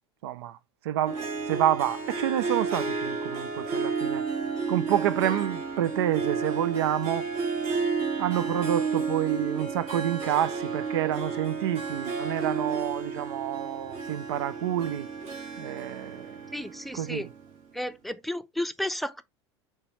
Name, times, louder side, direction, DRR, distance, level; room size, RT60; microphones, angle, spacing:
voice 1, 0.2-0.6 0.8-4.2 4.7-7.3 8.2-15.1 15.6-16.4 16.9-17.3, right 11 dB, 65° right, 0.5 m, -28 dB
Harp, 1.0-17.5, right 5 dB, 50° right, 3.1 m, -32 dB
voice 2, 16.5-17.3 17.7-19.2, left 1 dB, ahead, 0.7 m, -33 dB
6.7 x 4.6 x 3.0 m
hypercardioid pair, 85°, 14 cm